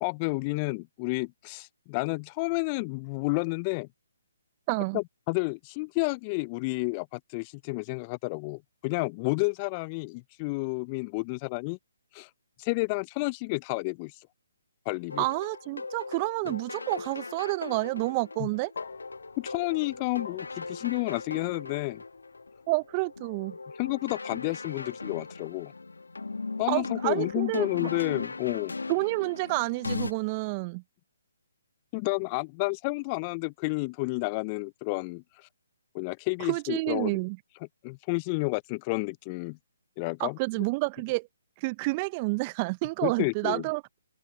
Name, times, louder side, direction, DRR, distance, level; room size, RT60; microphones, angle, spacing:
voice 1, 0.0-3.9 4.9-11.8 12.1-12.3 12.6-14.2 14.9-15.3 16.4-16.5 18.4-18.5 19.4-22.0 23.8-25.7 26.6-28.7 31.9-35.5 35.9-37.1 37.8-39.6 40.0-40.6 43.0-43.6, left 28 dB, 25° left, 0.4 m, -31 dB
voice 2, 4.7-5.0 15.2-18.7 22.7-23.5 26.7-27.9 28.9-30.8 36.5-37.4 40.2-41.3 41.6-43.8, right 26 dB, 30° right, 0.6 m, -29 dB
sound 1, 15.1-30.1, left 3 dB, 75° left, 1.5 m, -39 dB
sound 2, 18.7-27.1, left 7 dB, 55° left, 4.4 m, -53 dB
open air
figure-of-eight pair, 140°, 0 cm